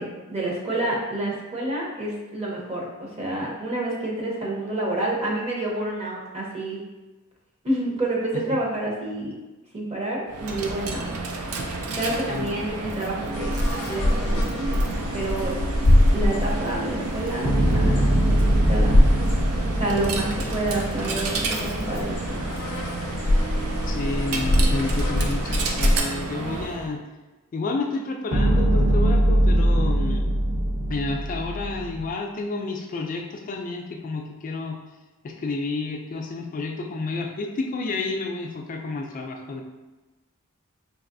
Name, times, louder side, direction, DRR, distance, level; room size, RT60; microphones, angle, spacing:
voice 1, 0.0-6.8 7.6-9.3 9.7-11.1 11.9-13.6 13.9-14.1 14.6-15.5 16.1-19.0 19.7-22.5, right 1 dB, 30° right, -3 dB, 0.8 m, -29 dB
Coin (dropping), 10.3-26.9, right 3 dB, 85° right, 0.4 m, -31 dB
voice 2, 12.1-12.6 23.8-27.0 27.5-30.3 30.9-34.8 35.2-39.6, left 3 dB, 35° left, 2 dB, 0.3 m, -30 dB
sound 1, 13.3-26.0, left 1 dB, 75° left, 0.6 m, -24 dB
sound 2, 17.4-21.7 28.3-32.1, right 1 dB, 55° right, 1.2 m, -22 dB
4.0 x 2.9 x 2.5 m, 1.2 s
head